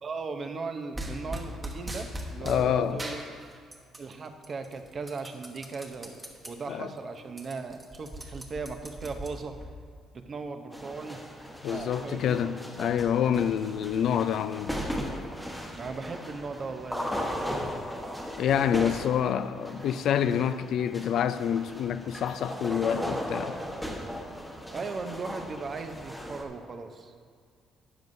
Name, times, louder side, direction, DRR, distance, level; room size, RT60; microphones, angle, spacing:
voice 1, 0.0-3.2 4.0-6.2 6.5-9.5 10.1-11.2 11.7-12.5 15.7-17.3 24.7-27.1, right 4 dB, 40° right, 6 dB, 0.7 m, -37 dB
sound 1, 0.9-2.6 3.0-4.1 4.4-6.5 6.9-7.0 7.3-9.7, right 1 dB, 15° right, 1.2 m, -39 dB
voice 2, 2.4-3.0 6.7-6.9 11.6-14.7 18.4-23.6, left 9 dB, 65° left, 12 dB, 0.4 m, -27 dB
sound 2, 10.7-26.4, equal, ahead, 1.1 m, -37 dB
12.5 x 9.3 x 2.7 m, 2.1 s
cardioid pair, 120°, 0 cm